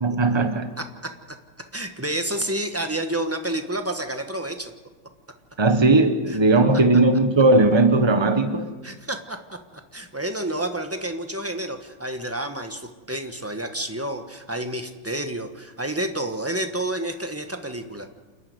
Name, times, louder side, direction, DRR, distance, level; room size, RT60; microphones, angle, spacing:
voice 1, 0.0-0.7 5.6-8.7, right 2 dB, 40° right, 8 dB, 0.4 m, -18 dB
voice 2, 1.7-4.7 8.8-9.4 9.7-18.1, right 1 dB, 10° right, 6 dB, 1.0 m, -29 dB
28.5 x 9.8 x 9.5 m, 1.3 s
omnidirectional pair, 2.2 m